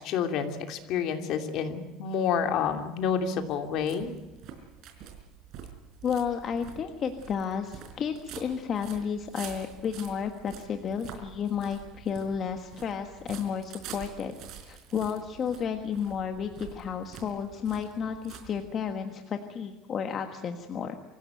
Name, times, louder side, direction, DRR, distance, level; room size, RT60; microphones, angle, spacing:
voice 1, 0.0-4.1, left 7 dB, 50° left, 6 dB, 2.8 m, -29 dB
sound 1, 2.6-19.0, right 8 dB, 50° right, 4.6 m, -47 dB
voice 2, 6.0-14.3 14.6-21.0, left 7 dB, 30° left, 6 dB, 1.5 m, -32 dB
25.5 x 16.0 x 9.2 m, 1.1 s
cardioid pair, 160°, 0 cm